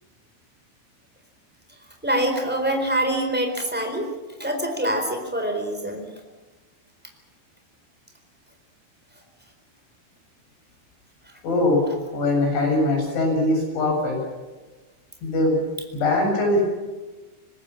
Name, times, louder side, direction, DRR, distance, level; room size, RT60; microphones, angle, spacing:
voice 1, 2.0-4.1 4.4-6.1, right 1 dB, ahead, 4 dB, 3.4 m, -25 dB
voice 2, 11.4-11.8 12.1-14.2 15.2-15.6 15.9-16.7, left 2 dB, 75° left, 1 dB, 9.8 m, -21 dB
26.0 x 20.0 x 7.2 m, 1.2 s
omnidirectional pair, 5.3 m